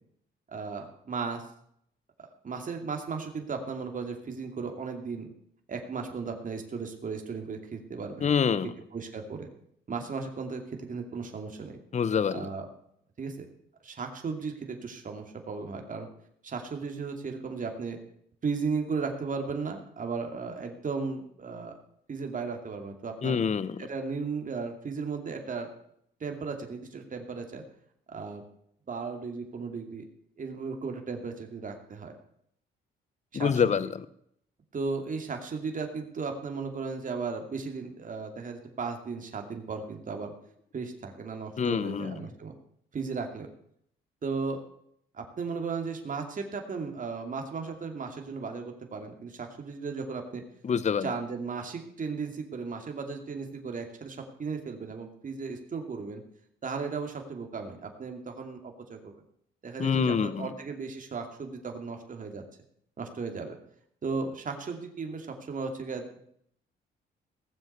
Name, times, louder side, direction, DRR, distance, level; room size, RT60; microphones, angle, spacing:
voice 1, 0.5-1.4 2.4-5.3 5.7-8.3 8.9-9.5 9.9-11.8 12.3-12.7 13.2-13.5 13.8-16.1 16.4-18.0 18.4-21.7 22.1-23.4 23.8-25.7 26.2-27.6 28.1-28.4 28.9-30.1 30.4-32.1 33.3-33.7 34.7-40.3 40.7-42.6 42.9-43.5 44.2-44.6 45.1-50.4 51.0-56.2 56.6-59.2 59.6-62.4 63.0-63.6 64.0-66.2, right 4 dB, 40° right, 4 dB, 2.6 m, -35 dB
voice 2, 8.2-8.7 11.9-12.5 23.2-23.8 33.3-33.9 41.6-42.1 50.6-51.1 59.8-60.5, left 6 dB, 35° left, 16 dB, 0.8 m, -26 dB
17.5 x 7.6 x 6.7 m, 0.69 s
cardioid pair, 90°, 20 cm